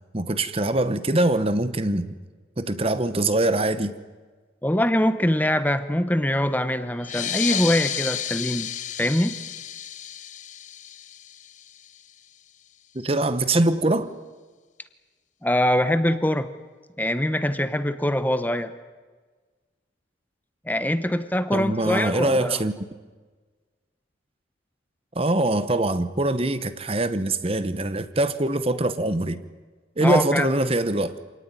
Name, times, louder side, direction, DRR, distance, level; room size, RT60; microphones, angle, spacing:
voice 1, 0.1-2.1 2.6-3.9 12.9-14.1 21.5-22.7 25.1-29.4 30.0-31.2, right 2 dB, 30° right, 1.0 m, -23 dB
voice 2, 4.6-8.7 9.0-9.3 15.4-16.5 17.0-18.7 20.7-22.6 30.0-30.5, left 1 dB, 10° left, 0.9 m, -23 dB
sound 1, 7.0-12.1, left 10 dB, 40° left, 0.8 m, -32 dB
27.0 x 18.5 x 9.6 m
head